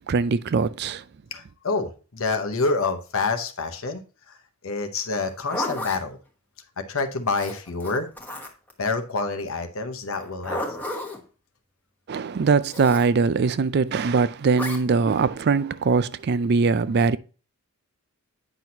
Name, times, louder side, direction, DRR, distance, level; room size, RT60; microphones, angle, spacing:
voice 1, 0.1-1.0 12.1-17.2, right 4 dB, 50° right, 0.4 m, -21 dB
voice 2, 1.3-4.0 4.3-4.4 4.6-6.2 6.8-8.1 8.8-10.6, left 3 dB, 65° left, 0.9 m, -27 dB
Zipper (clothing), 5.2-6.0 7.3-8.7 10.1-11.2 12.7-13.1 14.5-14.8, left 1 dB, 10° left, 1.2 m, -32 dB
8.9 x 6.0 x 2.8 m
head